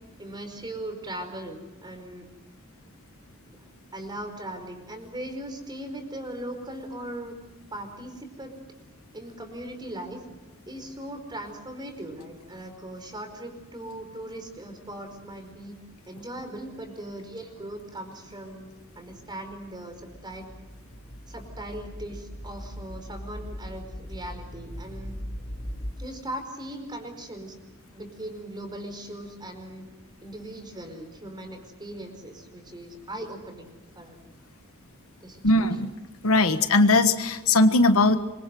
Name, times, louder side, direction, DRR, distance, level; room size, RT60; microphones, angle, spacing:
voice 1, 0.2-2.3 3.9-7.4 7.7-8.5 9.1-10.2 10.7-15.8 16.1-18.7 18.9-20.5 21.3-25.1 26.0-27.6 27.9-29.8 30.2-34.2 35.2-35.8, right 1 dB, 20° right, 6 dB, 4.9 m, -39 dB
sound 1, 19.0-25.9, equal, 20° left, 3.6 m, -40 dB
voice 2, 35.4-35.9 36.2-38.2, left 2 dB, 70° left, 9 dB, 1.5 m, -19 dB
26.5 x 23.5 x 7.8 m, 1.1 s
head